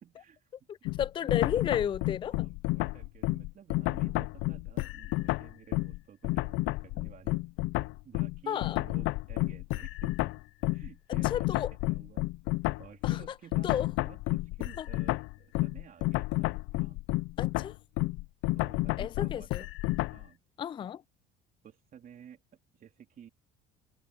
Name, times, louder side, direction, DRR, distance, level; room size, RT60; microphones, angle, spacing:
voice 1, 0.0-0.5 1.2-1.3 2.3-7.5 8.0-10.4 10.7-11.6 11.9-12.2 12.8-17.0 18.5-19.7 20.1-20.4 21.6-22.4 22.7-23.3, right 9 dB, 45° right, 3.6 m, -53 dB
voice 2, 0.7-2.5 8.5-8.8 11.2-11.7 13.0-13.2 13.6-13.9 14.8-14.9 17.4-17.7 19.0-19.6 20.6-21.0, left 9 dB, 25° left, 0.3 m, -33 dB
sound 1, 0.8-6.0 6.2-20.2, left 21 dB, 75° left, 0.5 m, -31 dB
cardioid pair, 110°, 21 cm